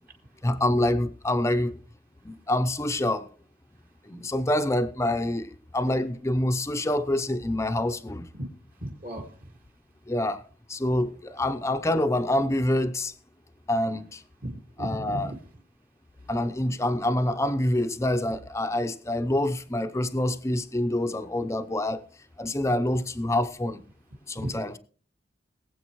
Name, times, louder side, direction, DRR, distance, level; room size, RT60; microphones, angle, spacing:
voice 1, 0.4-1.8 2.2-3.3 4.1-8.3 10.1-10.4 10.7-13.1 13.7-14.2 14.8-15.3 16.3-22.1 22.4-23.8 24.3-24.7, left 1 dB, 15° left, 0.6 m, -26 dB
voice 2, 8.8-9.5 14.4-15.4 24.4-24.6, right 1 dB, 50° right, 2.0 m, -35 dB
21.5 x 8.0 x 3.1 m
head